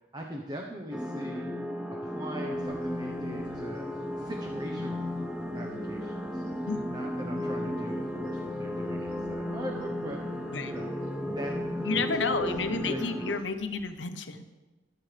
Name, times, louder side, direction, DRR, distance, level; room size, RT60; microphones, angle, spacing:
voice 1, 0.1-1.5 2.0-3.9 4.2-5.1 5.5-6.4 6.9-10.2 10.7-10.9 11.3-11.6 11.9-13.3, equal, 25° right, 1 dB, 1.0 m, -40 dB
sound 1, 0.9-13.4, left 1 dB, 5° right, 0.6 m, -34 dB
sound 2, 2.5-14.1, right 1 dB, 70° right, 4.4 m, -56 dB
voice 2, 11.8-14.4, left 4 dB, 85° left, 8 dB, 0.9 m, -31 dB
21.0 x 7.8 x 3.4 m, 1.2 s
head